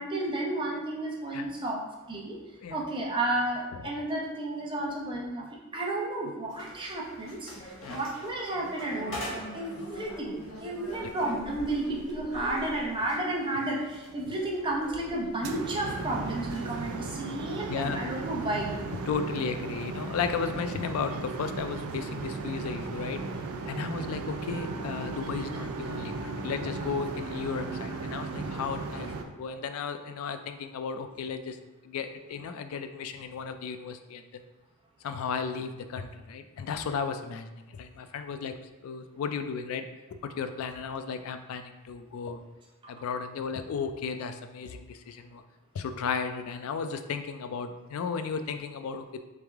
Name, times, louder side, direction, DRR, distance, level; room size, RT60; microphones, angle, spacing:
voice 1, 0.0-1.8 2.1-2.4 2.7-5.5 5.7-18.7, right 1 dB, 25° right, -3 dB, 0.7 m, -32 dB
sound 1, 6.5-17.2, equal, 65° left, 0.9 m, -43 dB
sound 2, 15.4-29.2, right 3 dB, 90° right, 0.4 m, -36 dB
voice 2, 17.6-18.0 19.1-23.2 23.7-31.6 31.8-34.4 35.0-38.5 38.8-39.9 40.2-42.4 42.9-45.4 45.7-49.2, left 5 dB, 85° left, 9 dB, 0.3 m, -34 dB
Wind instrument woodwind instrument, 23.9-28.7, right 1 dB, 70° right, 0.9 m, -44 dB
3.5 x 3.3 x 3.4 m, 1.1 s
head